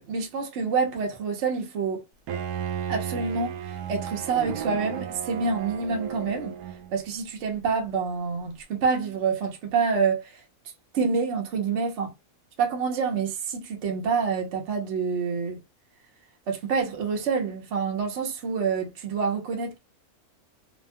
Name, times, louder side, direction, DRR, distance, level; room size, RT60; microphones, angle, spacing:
voice 1, 0.0-2.0 2.9-6.5 6.9-10.4 10.9-12.1 12.6-15.6 16.5-19.8, right 5 dB, 60° right, 1.0 m, -27 dB
Bowed string instrument, 2.3-7.0, right 8 dB, 85° right, 1.1 m, -34 dB
2.8 x 2.2 x 2.5 m
omnidirectional pair, 1.5 m